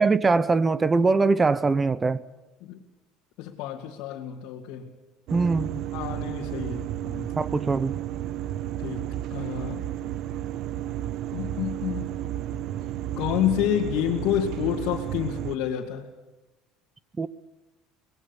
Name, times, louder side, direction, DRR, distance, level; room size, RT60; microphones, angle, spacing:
voice 1, 0.0-2.2 5.3-5.8 7.4-8.0 17.2-17.3, right 4 dB, 20° right, 0.8 m, -22 dB
voice 2, 3.4-4.9 5.9-7.3 8.8-9.8 11.3-12.2 12.9-16.1, left 10 dB, 70° left, 2.4 m, -29 dB
sound 1, 5.3-15.6, right 12 dB, 55° right, 0.8 m, -32 dB
24.0 x 20.0 x 7.2 m
cardioid pair, 130°, 0 cm